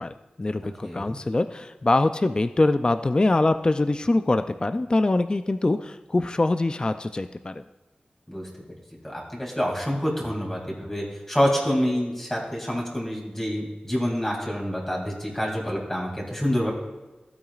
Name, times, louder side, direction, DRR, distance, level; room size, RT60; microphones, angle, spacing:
voice 1, 0.0-7.6, left 2 dB, 30° left, 9 dB, 0.4 m, -23 dB
voice 2, 0.8-1.2 8.3-8.5 9.0-16.7, equal, 15° left, -3 dB, 2.6 m, -27 dB
15.5 x 8.9 x 2.4 m, 1.1 s
wide cardioid pair, 90°, 3 cm